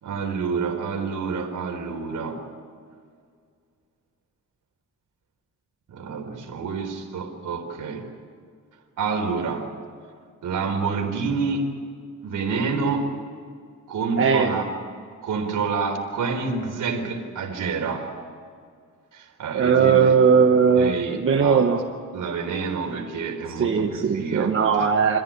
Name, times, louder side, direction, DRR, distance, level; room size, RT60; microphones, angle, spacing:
voice 1, 0.0-2.4 5.9-8.1 9.0-9.7 10.4-11.8 12.2-13.1 13.9-14.7 15.2-18.1 19.1-20.1 20.8-21.7 22.1-24.9, right 4 dB, 70° right, 3 dB, 4.1 m, -28 dB
voice 2, 14.2-14.5 19.5-21.8 23.6-25.2, right 6 dB, 40° right, 2 dB, 1.3 m, -19 dB
26.5 x 15.5 x 8.8 m, 2.1 s
wide cardioid pair, 175°, 32 cm